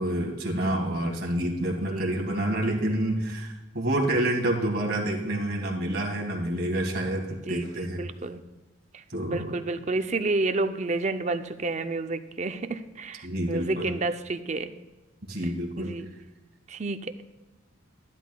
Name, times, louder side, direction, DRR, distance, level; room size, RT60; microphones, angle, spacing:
voice 1, 0.0-8.1 9.1-9.5 13.2-13.9 15.3-15.9, right 1 dB, 50° right, 1 dB, 1.9 m, -28 dB
voice 2, 7.5-8.4 8.9-14.7 15.8-16.1 16.7-17.1, right 3 dB, 35° right, 9 dB, 0.5 m, -30 dB
12.5 x 12.0 x 2.3 m, 1.1 s
head